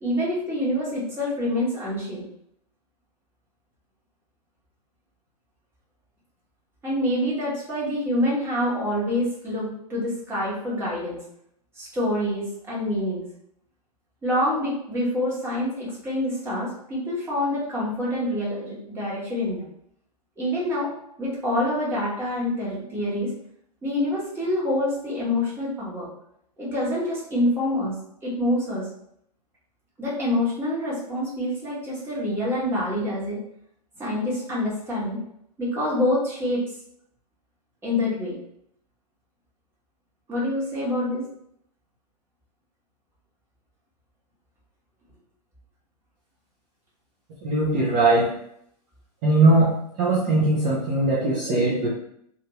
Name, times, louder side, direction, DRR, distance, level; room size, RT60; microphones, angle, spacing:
voice 1, 0.0-2.2 6.8-11.2 11.8-13.2 14.2-19.7 20.4-20.9 21.2-23.3 23.8-26.1 26.6-27.9 28.2-28.9 30.0-33.4 34.0-35.2 35.6-36.6 37.8-38.4 40.3-41.2, left 1 dB, 10° right, -7 dB, 1.2 m, -26 dB
voice 2, 47.4-48.3 49.2-49.7 50.0-51.9, right 2 dB, 30° right, -5 dB, 0.7 m, -20 dB
2.7 x 2.5 x 3.1 m, 0.71 s
figure-of-eight pair, 110°, 20 cm